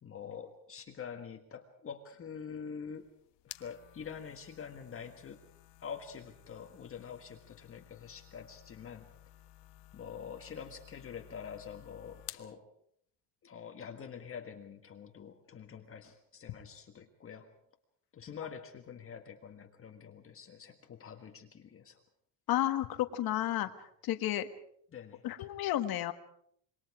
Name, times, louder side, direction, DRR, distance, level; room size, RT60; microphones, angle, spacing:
voice 1, 0.0-3.1 3.6-5.4 5.8-9.1 9.9-12.6 13.4-17.5 18.1-22.0 24.9-25.5, left 7 dB, 30° left, 5 dB, 1.6 m, -46 dB
sound 1, 2.9-12.5, left 16 dB, 70° left, 1.5 m, -54 dB
voice 2, 22.5-23.7 24.0-24.5 25.2-26.1, left 13 dB, 55° left, 9 dB, 1.6 m, -31 dB
27.0 x 23.0 x 4.9 m, 0.68 s
cardioid pair, 160°, 42 cm